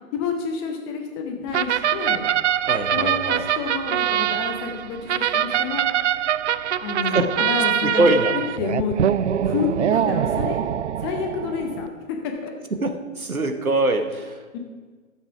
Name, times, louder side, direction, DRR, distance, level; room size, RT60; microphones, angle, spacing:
voice 1, 0.1-2.3 2.9-5.9 6.8-8.1 8.3-8.9 9.4-10.6 11.0-12.5 14.5-14.6, left 6 dB, 20° left, 3 dB, 0.7 m, -29 dB
sound 1, 1.5-11.9, right 9 dB, 55° right, 0.5 m, -23 dB
voice 2, 2.7-3.5 7.0-7.4 7.8-8.3 12.7-14.4, right 2 dB, 90° right, 7 dB, 1.2 m, -23 dB
11.5 x 7.4 x 5.9 m, 1.5 s
figure-of-eight pair, 125°, 41 cm